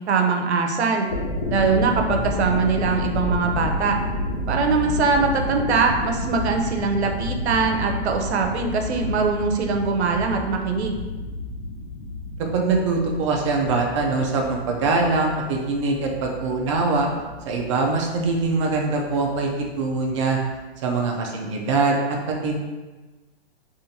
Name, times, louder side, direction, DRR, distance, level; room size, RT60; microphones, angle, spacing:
voice 1, 0.1-1.1 1.5-4.0 4.5-11.0, right 4 dB, 85° right, 4 dB, 0.6 m, -22 dB
sound 1, 1.0-20.6, left 2 dB, 35° left, 0.4 m, -31 dB
voice 2, 12.4-17.1 17.5-20.4 20.8-22.6, right 3 dB, 30° right, 1 dB, 0.4 m, -23 dB
3.7 x 2.5 x 2.7 m, 1.2 s
hypercardioid pair, 145°, 32 cm